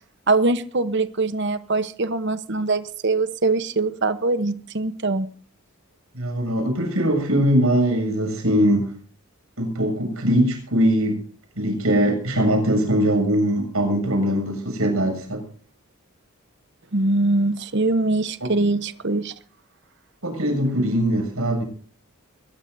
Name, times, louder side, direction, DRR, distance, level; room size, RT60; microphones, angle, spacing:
voice 1, 0.3-5.3 16.9-19.3, right 2 dB, 50° right, 12 dB, 1.0 m, -22 dB
voice 2, 6.1-8.9 9.6-11.2 11.6-15.4 18.4-18.5 20.2-21.6, equal, 70° right, 4 dB, 7.3 m, -21 dB
22.5 x 20.0 x 2.8 m, 0.42 s
head